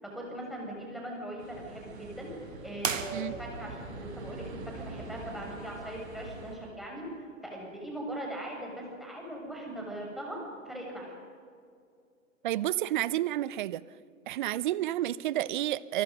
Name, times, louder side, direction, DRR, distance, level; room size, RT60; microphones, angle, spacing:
voice 1, 0.0-2.3 2.6-10.4 10.6-11.1, right 1 dB, ahead, -2 dB, 6.8 m, -40 dB
sound 1, 1.4-6.6, right 3 dB, 55° right, 7.4 m, -44 dB
sound 2, 2.8-3.8, right 6 dB, 75° right, 1.9 m, -35 dB
voice 2, 12.4-13.9 14.3-16.0, right 14 dB, 40° right, 19 dB, 0.7 m, -30 dB
29.5 x 24.5 x 5.4 m, 2.3 s
figure-of-eight pair, 120°, 40 cm